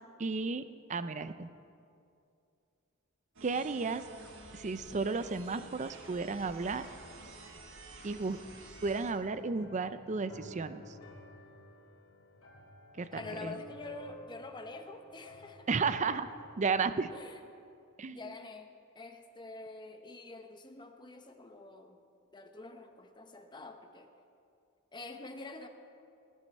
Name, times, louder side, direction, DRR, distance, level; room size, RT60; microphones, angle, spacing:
voice 1, 0.2-0.6 0.9-1.5 3.4-4.0 4.5-6.9 8.0-8.4 8.8-11.0 13.0-13.6 15.7-16.3 16.6-17.1 18.0-18.3, right 4 dB, 35° right, 12 dB, 0.5 m, -33 dB
sound 1, 3.4-9.1, right 2 dB, 65° right, 1.6 m, -50 dB
sound 2, 9.1-16.5, equal, 75° left, 2.6 m, -52 dB
voice 2, 13.0-15.7 17.1-17.4 18.1-22.0 22.3-24.1 24.9-25.7, left 3 dB, 20° left, 6 dB, 0.9 m, -46 dB
20.0 x 11.0 x 4.3 m, 2.5 s
head